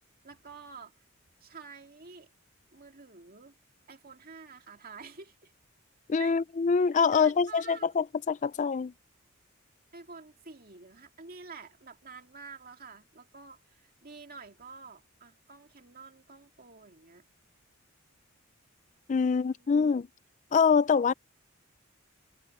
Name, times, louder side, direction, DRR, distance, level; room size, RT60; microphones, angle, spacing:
voice 1, 0.2-1.0 1.4-2.3 2.7-3.5 3.9-5.5 6.2-6.4 6.8-7.9 9.9-17.2 19.2-19.7, right 4 dB, 45° right, 2.4 m, -49 dB
voice 2, 6.1-8.9 19.1-20.1 20.5-21.1, left 5 dB, 35° left, 0.4 m, -25 dB
head